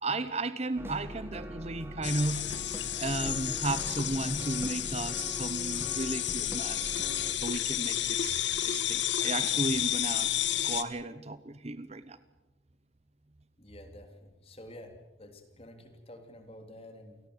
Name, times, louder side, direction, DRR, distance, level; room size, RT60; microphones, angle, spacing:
voice 1, 0.0-2.6 3.0-7.0 7.3-10.3 10.6-12.2, right 2 dB, 35° right, 13 dB, 0.9 m, -34 dB
sound 1, 0.8-7.3, equal, 10° right, 1.9 m, -42 dB
sound 2, 2.0-10.8, left 11 dB, 70° left, 1.4 m, -31 dB
voice 2, 13.6-17.2, left 1 dB, 30° left, 6 dB, 3.2 m, -50 dB
29.0 x 18.0 x 8.0 m, 1.1 s
head